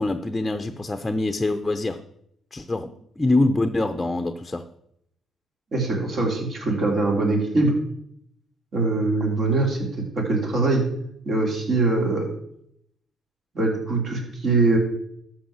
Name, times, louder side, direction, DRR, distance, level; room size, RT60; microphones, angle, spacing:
voice 1, 0.0-2.0 2.5-4.7, left 2 dB, 15° left, 8 dB, 0.7 m, -24 dB
voice 2, 5.7-7.7 8.7-9.8 10.1-10.8 11.3-12.3 13.5-14.8, right 3 dB, 50° right, 0 dB, 3.9 m, -22 dB
12.5 x 4.8 x 7.4 m, 0.73 s
cardioid pair, 90°, 0 cm